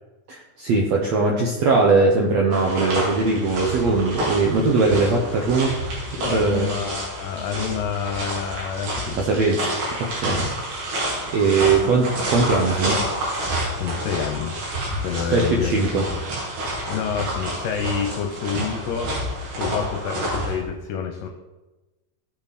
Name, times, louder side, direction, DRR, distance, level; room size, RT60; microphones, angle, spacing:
voice 1, 0.3-5.7 6.2-6.7 9.2-9.7 10.2-10.4 10.8-11.0 11.3-13.0 15.3-16.0, right 3 dB, 70° right, -1 dB, 1.6 m, -20 dB
sound 1, 2.5-20.6, right 1 dB, 90° right, 5.3 m, -29 dB
voice 2, 6.2-9.2 10.3-10.5 13.7-14.6 14.9-16.2 16.9-19.1 19.6-21.3, left 7 dB, 75° left, 4 dB, 2.3 m, -28 dB
16.5 x 6.4 x 4.2 m, 1.1 s
omnidirectional pair, 4.4 m